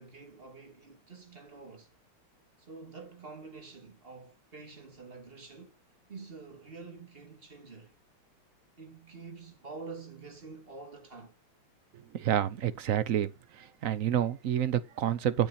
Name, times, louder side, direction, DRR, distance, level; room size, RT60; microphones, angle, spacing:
voice 1, 0.0-1.9 2.6-5.7 6.1-7.9 8.8-11.4, right 4 dB, 25° right, 2.4 m, -47 dB
voice 2, 12.1-13.3 13.8-15.5, right 10 dB, 65° right, 0.8 m, -28 dB
8.9 x 8.7 x 4.2 m
omnidirectional pair, 2.3 m